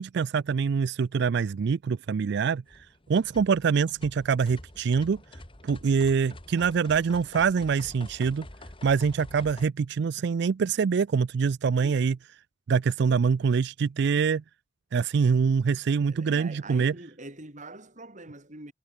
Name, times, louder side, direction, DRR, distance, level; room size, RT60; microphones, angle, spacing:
voice 1, 0.0-5.2 5.6-8.5 8.8-12.2 12.7-14.4 14.9-16.9, right 6 dB, 60° right, 0.4 m, -25 dB
sound 1, 2.7-9.7, left 1 dB, 30° left, 2.6 m, -47 dB
voice 2, 16.1-18.7, right 2 dB, 40° right, 6.0 m, -43 dB
head